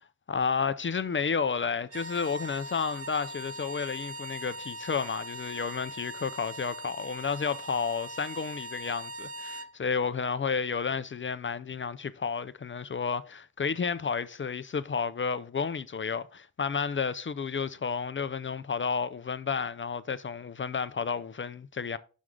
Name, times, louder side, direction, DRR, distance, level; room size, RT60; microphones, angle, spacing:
voice 1, 0.3-22.0, left 5 dB, 35° left, 0.4 m, -31 dB
sound 1, 1.8-9.7, right 2 dB, 40° right, 0.5 m, -41 dB
6.2 x 6.2 x 3.6 m
cardioid pair, 65°, 36 cm